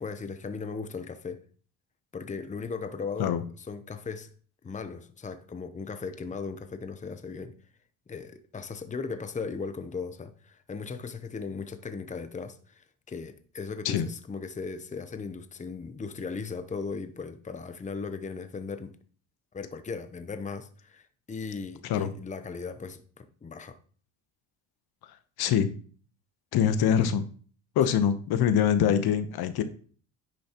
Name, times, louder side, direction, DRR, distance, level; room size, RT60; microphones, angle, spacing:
voice 1, 0.0-1.4 2.1-4.3 4.6-7.5 8.1-19.0 19.5-23.8, left 5 dB, 20° left, 0.8 m, -37 dB
voice 2, 26.5-27.2 27.8-29.6, left 8 dB, 65° left, 1.0 m, -24 dB
10.5 x 6.2 x 3.0 m
supercardioid pair, 85°, 40 cm